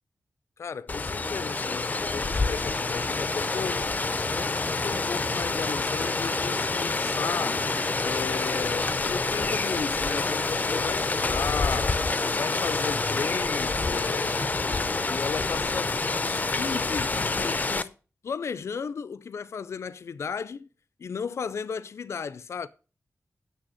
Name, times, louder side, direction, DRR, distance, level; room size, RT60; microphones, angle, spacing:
voice 1, 0.6-3.9 4.4-7.6 8.0-12.0 12.2-17.9 18.2-20.7 21.0-22.7, left 6 dB, 75° left, 0.5 m, -35 dB
Rain, 0.9-17.8, left 3 dB, 35° left, 0.6 m, -27 dB
8.9 x 6.9 x 6.3 m
wide cardioid pair, 85°, 5 cm